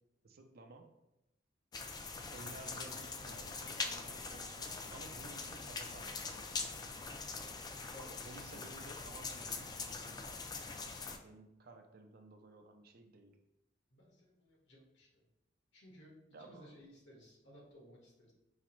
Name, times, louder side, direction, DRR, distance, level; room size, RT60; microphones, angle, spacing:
voice 1, 0.2-0.9 2.3-6.9 8.2-10.6 11.0-13.4 16.3-16.8, right 2 dB, 55° right, 5 dB, 0.5 m, -55 dB
sound 1, 1.7-11.2, left 4 dB, 20° left, 0.3 m, -43 dB
voice 2, 7.9-8.3 13.9-15.1 15.7-18.3, equal, 75° left, -3 dB, 1.4 m, -58 dB
4.8 x 2.0 x 4.3 m, 0.88 s
head